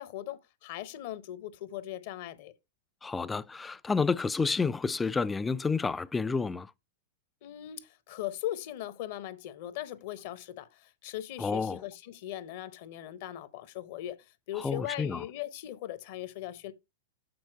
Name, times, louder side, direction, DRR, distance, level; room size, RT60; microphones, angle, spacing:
voice 1, 0.0-2.5 7.4-16.7, left 13 dB, 50° left, 0.8 m, -39 dB
voice 2, 3.0-6.7 11.4-11.8 14.6-15.2, left 4 dB, 10° left, 0.3 m, -30 dB
7.9 x 4.4 x 4.4 m
figure-of-eight pair, 100°, 0 cm